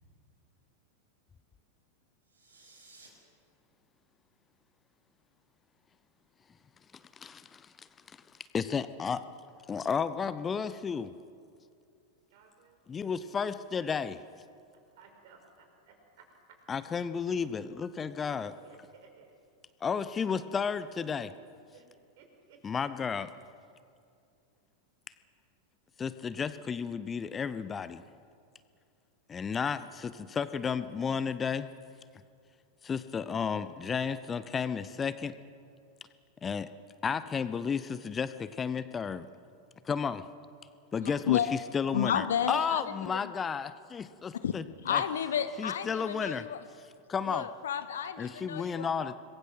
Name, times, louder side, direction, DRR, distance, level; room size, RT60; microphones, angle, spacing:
sound 1, 2.2-3.1, right 3 dB, 75° right, 5.8 m, -57 dB
voice 1, 7.2-7.9 8.5-9.2 9.7-11.1 12.9-14.2 16.7-18.5 19.8-21.3 22.6-23.3 26.0-28.0 29.3-31.7 32.8-35.4 36.4-36.7 37.0-39.3 39.8-40.3 40.9-41.4 41.7-45.0 45.6-46.4 47.1-47.5 48.2-49.1, left 6 dB, 20° left, 0.8 m, -33 dB
voice 2, 12.3-12.8 13.0-13.2 15.0-15.9 18.4-19.3 21.7-21.8 22.2-22.6, right 6 dB, 50° right, 5.4 m, -58 dB
voice 3, 41.0-41.6 41.9-43.3 44.4-44.6 44.8-46.6 47.2-49.1, left 8 dB, 65° left, 0.9 m, -32 dB
26.0 x 21.5 x 6.3 m
figure-of-eight pair, 90°, 0 cm